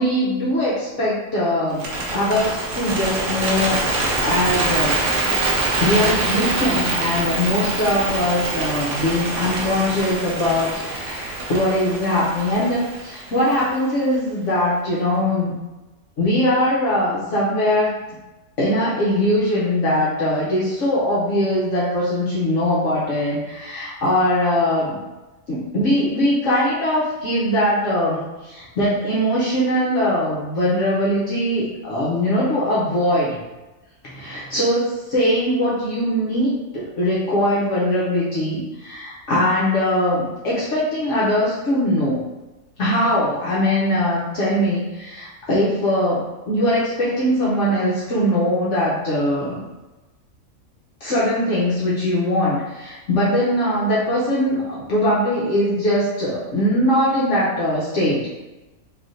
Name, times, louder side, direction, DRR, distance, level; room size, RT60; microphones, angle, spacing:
voice 1, 0.0-1.8 2.1-5.0 5.3-15.5 16.2-17.9 18.6-25.0 25.5-33.4 34.0-42.2 42.8-49.6 51.0-58.3, left 1 dB, 65° left, -8 dB, 1.0 m, -21 dB
Bird, 1.7-13.9, right 2 dB, 70° right, 1.0 m, -24 dB
3.4 x 2.4 x 2.5 m, 1.1 s
omnidirectional pair, 1.5 m